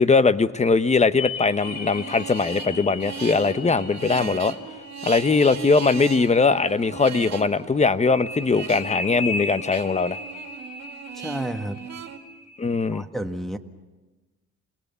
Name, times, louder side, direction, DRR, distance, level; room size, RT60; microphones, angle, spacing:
voice 1, 0.0-4.6 5.0-10.2 12.6-13.0, left 4 dB, 25° left, 13 dB, 0.9 m, -20 dB
sound 1, 1.2-6.7 8.0-12.8, left 3 dB, 55° left, 4.5 m, -37 dB
sound 2, 1.6-12.2, right 7 dB, 60° right, 2.2 m, -37 dB
voice 2, 11.1-11.8 12.9-13.6, right 1 dB, ahead, 7 dB, 1.7 m, -31 dB
28.0 x 19.5 x 7.0 m, 1.2 s
cardioid pair, 90°, 30 cm